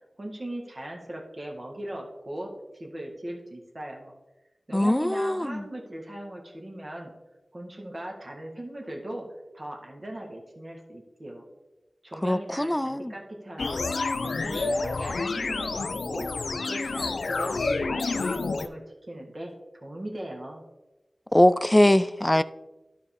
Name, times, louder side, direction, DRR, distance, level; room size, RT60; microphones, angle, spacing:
voice 1, 0.2-4.1 4.7-7.1 7.5-9.3 9.5-11.4 12.0-16.3 16.6-19.5 19.8-20.6, right 1 dB, 45° right, 1.6 m, -39 dB
voice 2, 4.7-5.6 12.2-13.1 21.3-22.4, left 1 dB, 15° left, 0.4 m, -21 dB
sound 1, 13.6-18.7, left 3 dB, 90° left, 0.4 m, -29 dB
12.5 x 4.2 x 3.5 m
wide cardioid pair, 45°, 0 cm